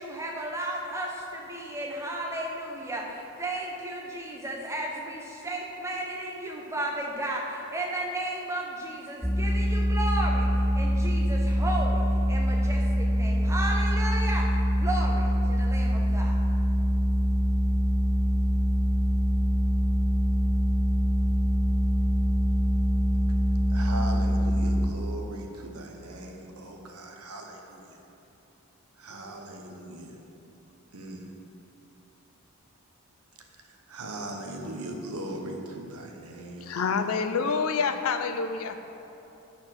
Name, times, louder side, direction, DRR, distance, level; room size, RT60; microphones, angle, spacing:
voice 1, 0.0-10.5 10.7-14.5 14.8-16.4, right 1 dB, 15° right, -1 dB, 0.8 m, -34 dB
sound 1, 9.2-24.9, left 1 dB, 5° left, 0.3 m, -24 dB
voice 2, 23.7-28.0 29.0-30.2 30.9-31.3 33.6-36.8, right 1 dB, 80° right, 2 dB, 0.9 m, -39 dB
voice 3, 36.6-38.8, left 5 dB, 70° left, 8 dB, 0.5 m, -27 dB
8.8 x 4.3 x 5.9 m, 3.0 s
head